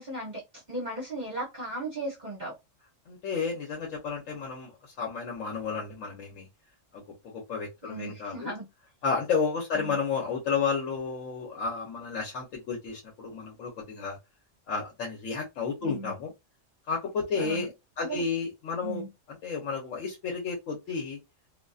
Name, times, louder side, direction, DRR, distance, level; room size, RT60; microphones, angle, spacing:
voice 1, 0.0-2.5 7.8-8.7 9.7-10.0 15.8-16.1 17.3-17.7 18.0-18.2 18.8-19.1, right 2 dB, 40° right, 0.9 m, -36 dB
voice 2, 3.1-4.7 5.0-6.5 7.3-8.5 9.0-14.2 14.7-16.3 16.9-17.7 18.0-19.0 19.4-21.2, left 5 dB, 80° left, 1.1 m, -31 dB
2.6 x 2.5 x 2.3 m
omnidirectional pair, 1.3 m